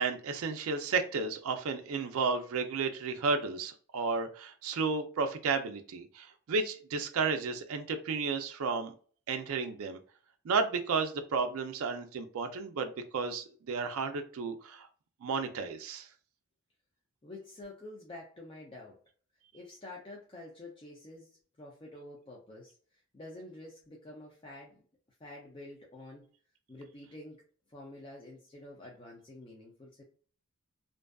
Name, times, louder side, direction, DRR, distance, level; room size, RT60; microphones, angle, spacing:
voice 1, 0.0-8.9 9.3-10.0 10.4-14.9 15.2-16.1, right 4 dB, 70° right, 6 dB, 0.3 m, -32 dB
voice 2, 17.2-19.0 19.5-22.8 23.1-24.8 25.2-26.3 26.7-27.4 27.7-30.0, left 2 dB, 25° left, -2 dB, 0.4 m, -48 dB
2.5 x 2.3 x 2.2 m, 0.42 s
head